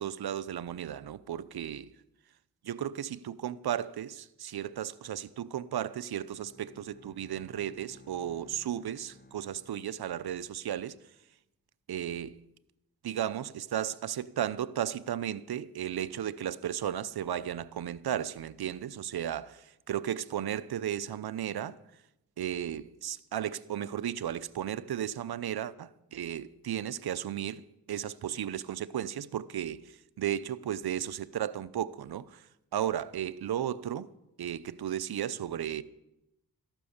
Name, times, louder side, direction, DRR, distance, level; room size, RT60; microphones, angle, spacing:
voice 1, 0.0-1.9 2.6-11.0 11.9-12.4 13.0-21.8 22.4-34.1 34.4-35.8, right 10 dB, 80° right, 0.7 m, -35 dB
Bowed string instrument, 6.2-10.6, left 2 dB, 25° left, 1.1 m, -58 dB
14.0 x 11.5 x 7.2 m
cardioid pair, 60°, 38 cm